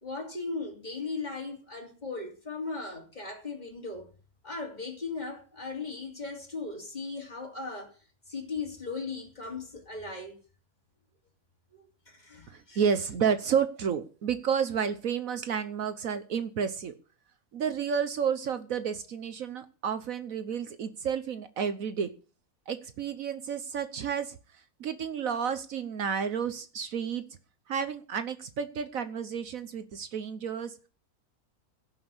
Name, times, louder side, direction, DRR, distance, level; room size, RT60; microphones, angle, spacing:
voice 1, 0.0-4.1 4.4-8.0 8.3-10.4 11.7-12.8, left 3 dB, 30° left, 3.2 m, -38 dB
voice 2, 12.5-16.9 17.5-22.1 22.7-24.4 24.8-27.2 27.7-30.7, right 7 dB, 65° right, 1.3 m, -31 dB
17.0 x 6.2 x 7.3 m
omnidirectional pair, 1.6 m